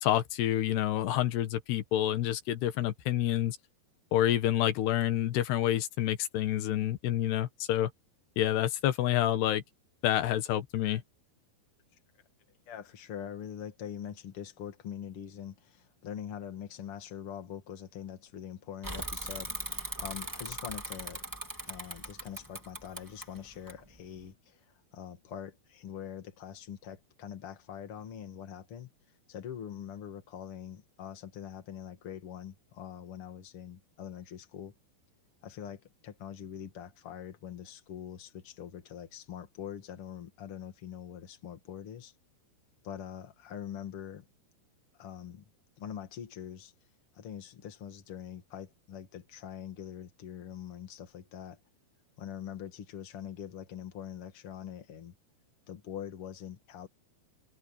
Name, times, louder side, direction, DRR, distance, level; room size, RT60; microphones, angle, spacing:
voice 1, 0.0-3.6 4.1-7.9 8.4-9.6 10.0-11.0, left 12 dB, 85° left, 3.5 m, -28 dB
voice 2, 12.7-21.2 21.7-28.9 29.3-34.7 35.4-42.1 42.8-44.3 45.0-45.5 45.8-46.7 47.1-51.6 52.2-55.1 55.7-56.9, left 9 dB, 40° left, 2.6 m, -43 dB
Bicycle / Mechanisms, 18.8-24.3, right 1 dB, 10° right, 1.2 m, -40 dB
omnidirectional pair, 4.6 m